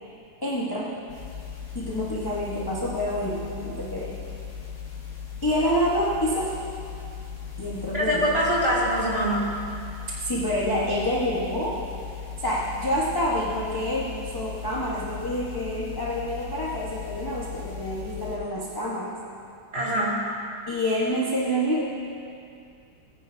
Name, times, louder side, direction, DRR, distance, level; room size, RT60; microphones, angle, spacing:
voice 1, 0.4-0.9 1.7-4.2 5.4-6.6 7.6-8.3 10.1-11.8 12.4-19.1 20.7-21.8, equal, 15° left, -7 dB, 0.9 m, -27 dB
sound 1, 1.1-18.4, left 8 dB, 60° left, 2.2 m, -38 dB
voice 2, 7.9-9.5 19.7-20.2, equal, 30° right, -8 dB, 3.0 m, -24 dB
19.0 x 10.0 x 2.8 m, 2.4 s
omnidirectional pair, 2.2 m